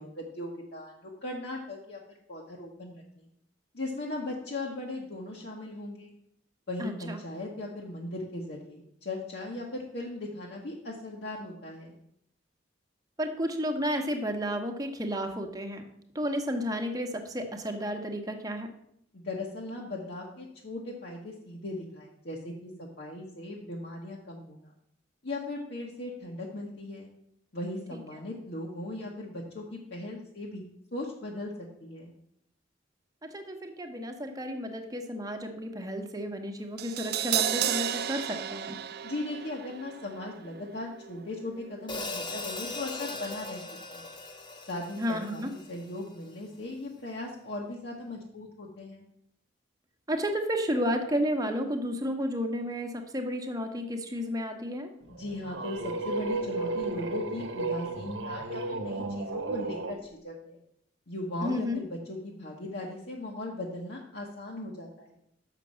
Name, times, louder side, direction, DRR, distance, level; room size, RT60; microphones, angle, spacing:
voice 1, 0.0-3.3 3.7-6.1 6.7-12.0 19.1-24.7 25.2-27.1 27.5-30.6 30.9-32.1 39.0-43.6 43.9-44.1 44.6-49.1 55.2-60.6 61.1-65.2, left 2 dB, 60° left, -2 dB, 1.2 m, -38 dB
voice 2, 6.8-7.2 13.2-15.8 16.1-18.7 33.2-38.8 45.0-45.5 50.1-54.9 61.4-61.8, equal, 20° right, 4 dB, 1.0 m, -32 dB
Crash cymbal, 36.8-42.9 43.2-43.3, right 10 dB, 55° right, 0.4 m, -34 dB
Hi-hat, 41.9-46.2, left 2 dB, 25° left, 0.7 m, -39 dB
sound 1, 55.1-60.0, right 3 dB, 80° right, 0.9 m, -33 dB
6.7 x 6.0 x 7.3 m, 0.74 s
head